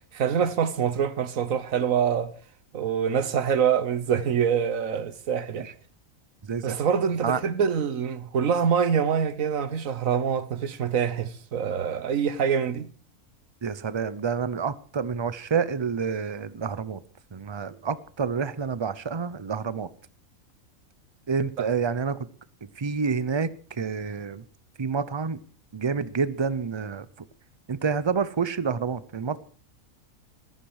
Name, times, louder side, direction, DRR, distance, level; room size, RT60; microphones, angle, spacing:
voice 1, 0.1-2.3 2.7-5.7 6.6-12.9 21.6-21.7, right 7 dB, 70° right, 1.4 m, -25 dB
voice 2, 13.6-17.0 17.3-19.9 21.3-22.2 22.8-23.5 23.8-24.4 24.8-25.4 25.7-27.1 27.7-29.4, right 5 dB, 35° right, 0.4 m, -28 dB
15.0 x 13.5 x 4.8 m
omnidirectional pair, 1.5 m